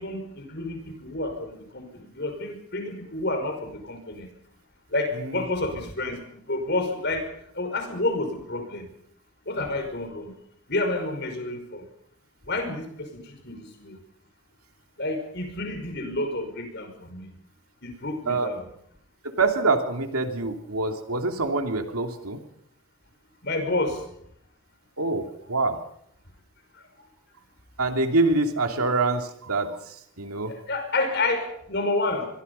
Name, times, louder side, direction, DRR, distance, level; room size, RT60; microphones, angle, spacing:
voice 1, 0.0-4.3 4.9-7.3 7.5-8.9 9.5-10.3 10.7-11.8 12.4-14.0 15.0-17.3 17.8-18.6 23.4-24.1 26.7-26.9 30.5-32.3, left 2 dB, 50° left, 6 dB, 5.5 m, -29 dB
voice 2, 19.4-22.4 25.0-25.8 27.8-30.5, right 3 dB, 90° right, 5 dB, 2.8 m, -25 dB
26.0 x 22.0 x 5.6 m, 0.70 s
head